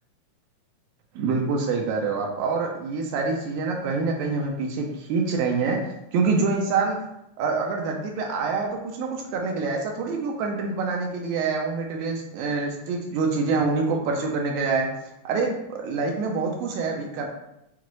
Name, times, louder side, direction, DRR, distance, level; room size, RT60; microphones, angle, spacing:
voice 1, 1.2-5.8 6.1-7.0 7.4-14.9 15.3-17.3, right 4 dB, 80° right, 1 dB, 1.9 m, -26 dB
5.9 x 2.4 x 3.0 m, 0.85 s
omnidirectional pair, 3.6 m